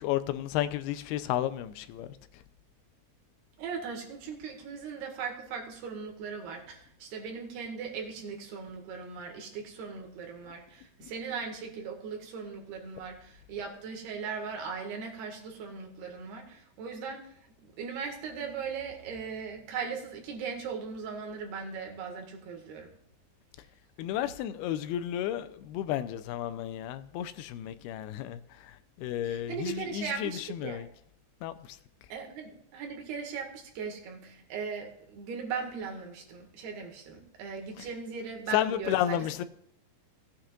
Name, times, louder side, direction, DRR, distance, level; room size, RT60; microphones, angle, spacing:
voice 1, 0.0-2.1 11.0-11.1 24.0-28.4 29.0-30.9 31.4-31.5 38.5-39.4, left 11 dB, 90° left, 2.6 m, -32 dB
voice 2, 3.6-17.3 17.8-22.9 29.2-30.8 32.1-39.3, right 5 dB, 90° right, 3.9 m, -38 dB
17.5 x 8.8 x 2.5 m
omnidirectional pair, 4.4 m